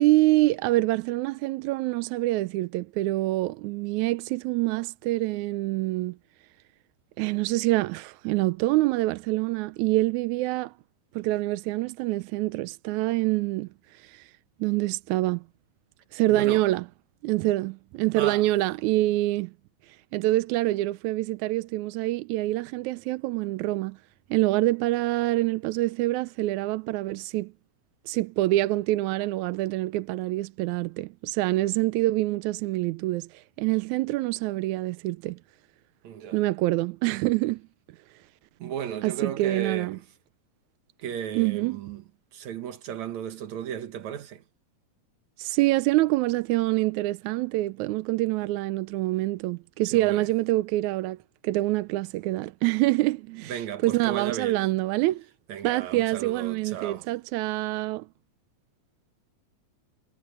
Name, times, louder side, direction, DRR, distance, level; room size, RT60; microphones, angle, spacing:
voice 1, 0.0-6.2 7.2-10.7 11.2-13.7 14.0-14.3 14.6-15.4 16.1-16.8 17.2-19.5 20.1-24.0 24.3-27.5 28.1-35.4 36.3-37.6 39.0-40.0 41.4-41.8 45.4-51.2 51.4-55.2 55.6-58.1, right 18 dB, 80° right, 1.8 m, -26 dB
voice 2, 16.3-16.7 18.2-18.5 36.0-36.4 38.6-40.0 41.0-42.0 42.3-44.4 49.9-50.3 53.3-54.6 55.5-57.1, right 9 dB, 65° right, 2.7 m, -34 dB
omnidirectional pair, 3.8 m